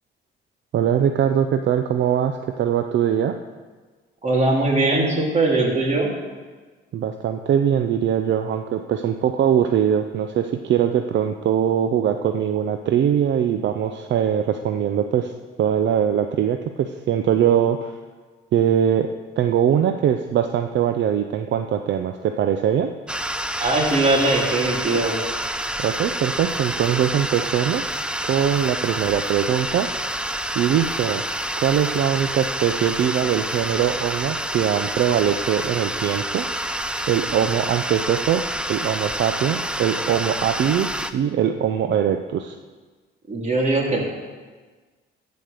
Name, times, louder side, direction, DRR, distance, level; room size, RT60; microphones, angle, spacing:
voice 1, 0.7-3.3 6.9-15.3 15.6-17.9 18.5-19.1 19.4-22.9 25.8-27.8 28.3-29.9 30.5-31.2 31.6-36.5 37.1-38.4 38.7-42.6, right 9 dB, 65° right, 6 dB, 0.6 m, -21 dB
voice 2, 4.2-6.1 23.6-25.2 43.3-44.0, right 2 dB, 35° right, -1 dB, 3.2 m, -20 dB
sound 1, 23.1-41.1, right 1 dB, 5° right, 0.6 m, -28 dB
15.5 x 5.3 x 6.6 m, 1.4 s
cardioid pair, 90°, 20 cm